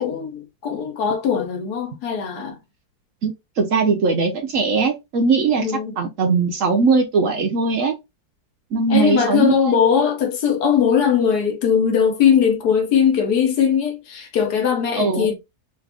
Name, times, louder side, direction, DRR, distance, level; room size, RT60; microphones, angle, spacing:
voice 1, 0.0-2.6 5.6-6.0 8.9-15.3, left 7 dB, 70° left, 1.4 m, -20 dB
voice 2, 3.2-5.7 6.0-8.0 8.7-9.7 15.0-15.3, right 4 dB, 60° right, 0.9 m, -20 dB
3.2 x 2.5 x 3.4 m
omnidirectional pair, 1.8 m